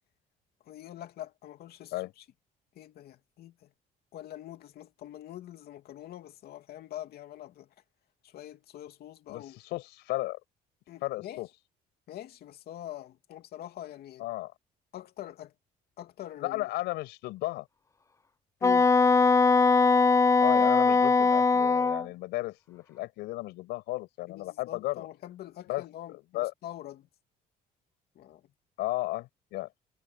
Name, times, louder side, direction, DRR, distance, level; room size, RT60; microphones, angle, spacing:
voice 1, 0.6-2.2 2.7-3.7 4.1-7.7 8.2-9.6 10.9-11.4 12.1-14.3 14.9-15.5 16.0-16.7 18.6-18.9 24.3-27.1 28.1-28.5, left 13 dB, 70° left, 2.7 m, -44 dB
voice 2, 9.3-10.4 11.0-11.5 14.2-14.5 16.4-17.7 20.4-25.1 25.7-25.8 26.1-26.5 28.8-29.7, left 18 dB, 90° left, 6.5 m, -34 dB
Wind instrument woodwind instrument, 18.6-22.1, left 4 dB, 20° left, 0.7 m, -21 dB
cardioid pair, 110°, 17 cm